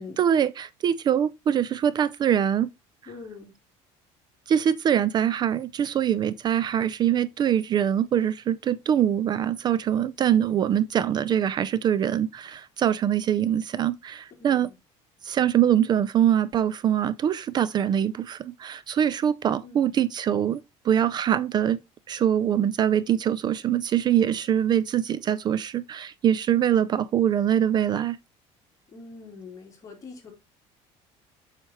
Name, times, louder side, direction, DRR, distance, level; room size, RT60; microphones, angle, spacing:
voice 1, 0.2-2.7 4.5-14.7 15.2-21.8 22.1-28.2, right 9 dB, 35° right, 0.4 m, -23 dB
voice 2, 3.1-3.5 9.9-10.1 14.4-14.7 19.6-19.9 28.9-30.3, left 4 dB, 25° left, 3.5 m, -43 dB
8.0 x 5.7 x 3.0 m
cardioid pair, 140°, 13 cm